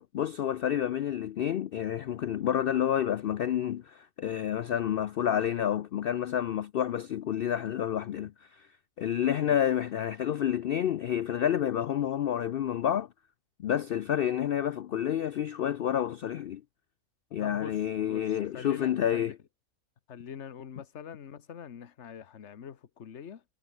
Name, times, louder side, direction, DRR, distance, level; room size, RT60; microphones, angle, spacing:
voice 1, 0.0-8.7 9.0-13.1 13.6-16.6 17.3-19.3, left 10 dB, 90° left, 0.5 m, -29 dB
voice 2, 17.4-19.3 20.1-23.4, left 8 dB, 55° left, 1.3 m, -44 dB
omnidirectional pair, 1.5 m